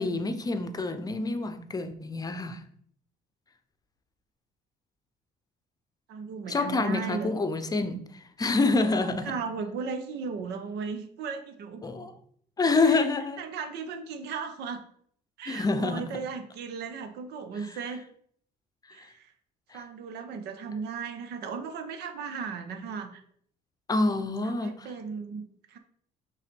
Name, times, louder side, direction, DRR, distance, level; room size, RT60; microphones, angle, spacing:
voice 1, 0.0-2.6 6.5-9.4 11.8-12.1 12.6-13.4 15.5-16.1 19.0-19.1 19.7-19.8 23.9-24.9, left 3 dB, 20° left, 0.7 m, -27 dB
voice 2, 6.1-7.3 8.7-11.8 12.8-13.1 13.4-14.8 15.4-18.0 18.9-19.3 19.7-23.2 24.4-25.8, right 5 dB, 80° right, 0.9 m, -36 dB
5.7 x 3.3 x 5.2 m
cardioid pair, 110°, 17 cm